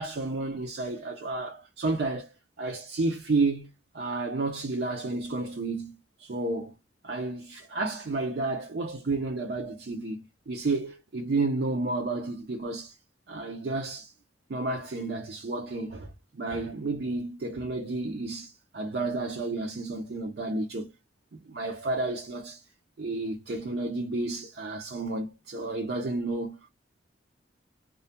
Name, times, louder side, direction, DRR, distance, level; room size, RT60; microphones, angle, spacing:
voice 1, 0.0-3.7 3.9-5.9 6.2-6.7 7.0-13.0 13.3-14.1 14.5-20.9 21.3-22.6 23.0-26.7, right 2 dB, 60° right, 0.5 m, -31 dB
2.3 x 2.1 x 2.7 m
head